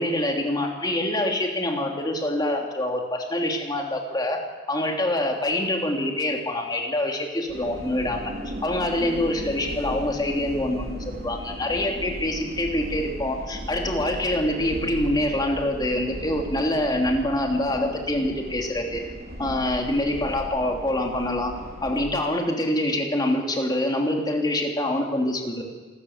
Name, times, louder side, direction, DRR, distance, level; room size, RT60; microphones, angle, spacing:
voice 1, 0.0-4.4 4.7-8.3 8.6-19.0 19.4-21.5 21.8-25.6, left 1 dB, 20° left, 1 dB, 3.1 m, -25 dB
sound 1, 7.5-22.0, equal, 55° right, 3.7 m, -36 dB
27.5 x 13.5 x 8.1 m, 1.3 s
head